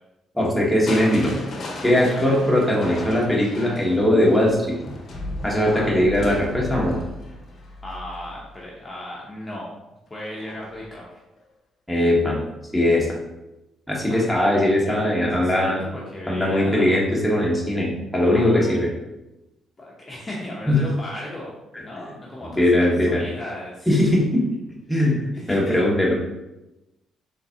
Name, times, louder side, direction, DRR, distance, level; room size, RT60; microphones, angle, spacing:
voice 1, 0.3-1.4 1.8-4.8 5.4-7.0 11.9-12.4 12.7-13.1 13.9-15.8 16.3-18.9 20.7-20.8 22.4-23.2 23.9-24.4 24.9-26.1, left 1 dB, ahead, -4 dB, 1.2 m, -20 dB
Crushing, 0.9-8.8 10.4-10.9 11.4-11.5, left 1 dB, 55° left, 0.8 m, -35 dB
voice 2, 2.1-2.4 5.6-5.9 7.8-9.7 10.1-11.2 14.1-16.9 18.2-18.8 19.8-21.5 21.8-23.9 25.3-25.8, left 1 dB, 25° left, -4 dB, 0.8 m, -35 dB
3.8 x 3.4 x 2.8 m, 0.97 s
cardioid pair, 90°, 0 cm